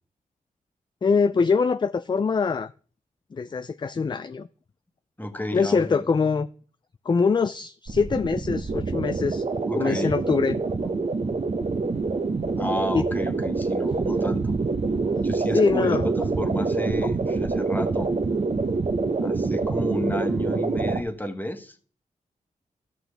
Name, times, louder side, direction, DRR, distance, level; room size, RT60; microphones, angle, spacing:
voice 1, 1.0-2.7 3.3-4.5 5.3-6.5 7.1-9.4 9.7-10.6 12.9-13.0 15.5-16.1, left 5 dB, 30° left, 0.4 m, -23 dB
voice 2, 5.2-6.1 9.7-10.2 12.6-14.5 15.2-18.1 19.2-21.7, equal, 10° left, 1.4 m, -31 dB
sound 1, 7.9-21.0, right 3 dB, 50° right, 0.9 m, -26 dB
13.5 x 6.0 x 3.4 m
cardioid pair, 50°, 15 cm